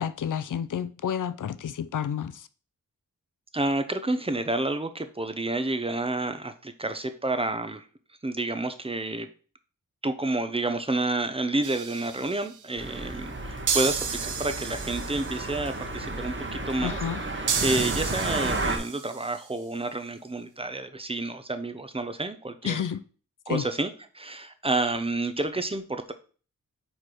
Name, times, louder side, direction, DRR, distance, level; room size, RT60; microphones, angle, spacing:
voice 1, 0.0-2.5 16.8-17.2 22.6-23.0 23.5-23.7, left 8 dB, 65° left, 0.5 m, -30 dB
voice 2, 3.5-7.9 8.2-9.3 10.0-22.8 23.5-26.1, right 2 dB, 15° right, 0.7 m, -29 dB
sound 1, 11.6-12.5 13.7-15.6 17.5-19.4, right 6 dB, 65° right, 0.7 m, -32 dB
sound 2, 12.8-18.8, right 2 dB, 35° right, 1.2 m, -32 dB
4.5 x 4.4 x 4.9 m
wide cardioid pair, 80°, 34 cm